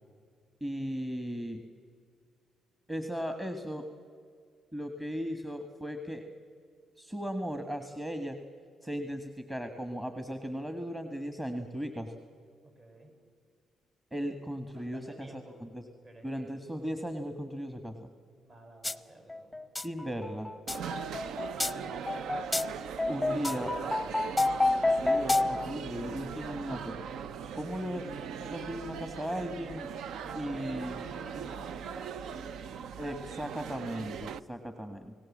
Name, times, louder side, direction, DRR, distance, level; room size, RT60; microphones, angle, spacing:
voice 1, 0.6-1.6 2.9-3.8 4.7-6.2 7.0-8.4 8.8-12.1 14.1-15.8 16.2-18.1 19.8-20.5 23.1-23.7 24.7-26.9 27.5-28.1 28.4-29.9 30.3-31.0 33.0-35.1, equal, 15° right, 7 dB, 1.7 m, -37 dB
voice 2, 12.6-13.1 14.7-15.6 16.0-16.6 18.4-19.6 21.1-22.0 23.3-24.2 30.2-32.6, right 1 dB, 40° right, 4 dB, 6.8 m, -51 dB
sound 1, 18.8-19.0 19.3-25.7, left 2 dB, 10° left, 0.8 m, -29 dB
sound 2, 20.7-34.4, right 7 dB, 75° right, 0.6 m, -40 dB
29.5 x 17.5 x 7.4 m, 2.2 s
cardioid pair, 90°, 0 cm